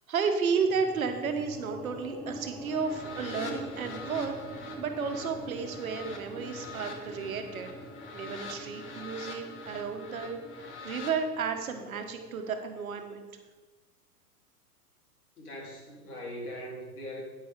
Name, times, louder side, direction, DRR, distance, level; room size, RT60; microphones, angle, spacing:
voice 1, 0.1-4.3 4.8-7.7 8.1-10.4 10.8-13.2, right 5 dB, 60° right, 6 dB, 1.5 m, -32 dB
sound 1, 0.6-12.9, equal, ahead, 0.6 m, -45 dB
sound 2, 2.7-11.2, left 5 dB, 25° left, 1.3 m, -45 dB
voice 2, 15.4-17.2, equal, 65° left, -2 dB, 3.5 m, -40 dB
9.6 x 9.4 x 3.8 m, 1.3 s
figure-of-eight pair, 105°, 48 cm